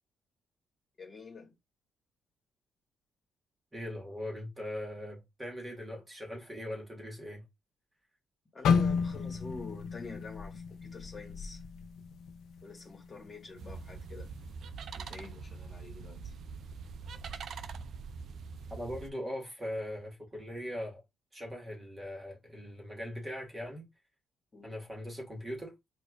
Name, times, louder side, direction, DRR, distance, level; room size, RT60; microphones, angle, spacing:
voice 1, 1.0-1.5 8.5-11.6 12.6-14.3 14.9-16.3 24.5-24.7, left 3 dB, 35° left, 1.3 m, -46 dB
voice 2, 3.7-7.4 18.7-21.0 21.3-23.9 24.6-25.8, left 1 dB, 20° right, 1.4 m, -40 dB
sound 1, 8.6-12.7 13.0-13.3 13.9-14.3, left 6 dB, 75° left, 0.4 m, -32 dB
sound 2, 13.6-19.1, right 5 dB, 65° right, 0.4 m, -43 dB
4.3 x 2.3 x 2.3 m
cardioid pair, 90°, 0 cm